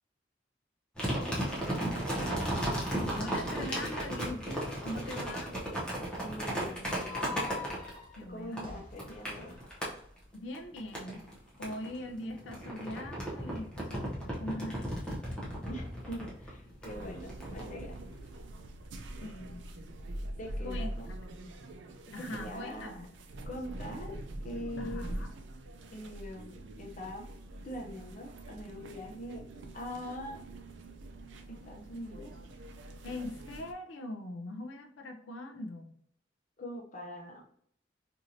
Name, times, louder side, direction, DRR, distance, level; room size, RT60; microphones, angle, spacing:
sound 1, 1.0-8.2 8.5-9.9 10.5-11.3 11.6-18.3, right 1 dB, 5° left, 0.8 m, -35 dB
voice 1, 1.1-2.5 6.2-7.4 8.3-9.6 15.7-18.0 20.4-21.1 22.2-22.9 23.5-24.2 24.4-25.2 25.9-27.2 27.6-29.4 29.7-30.4 31.5-32.4 36.6-37.5, equal, 45° left, 0 dB, 0.6 m, -43 dB
voice 2, 3.1-5.6 8.2-8.8 10.3-11.3 11.6-15.1 16.9-17.2 19.2-19.7 20.6-21.5 22.1-23.1 24.8-25.3 33.0-35.9, left 1 dB, 90° left, 4 dB, 0.4 m, -42 dB
sound 2, 6.8-10.0, left 5 dB, 30° right, 0.9 m, -45 dB
sound 3, 16.8-33.7, right 1 dB, 80° right, 0.4 m, -44 dB
3.0 x 2.6 x 2.7 m, 0.64 s
head